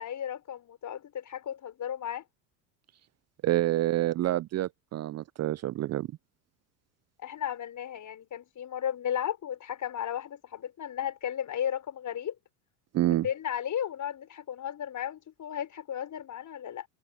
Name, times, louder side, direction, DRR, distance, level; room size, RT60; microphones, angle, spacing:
voice 1, 0.0-2.2 7.2-12.3 13.1-16.9, left 9 dB, 40° left, 6.4 m, -34 dB
voice 2, 3.4-6.1 12.9-13.3, right 14 dB, 35° right, 0.7 m, -27 dB
hypercardioid pair, 80°, 46 cm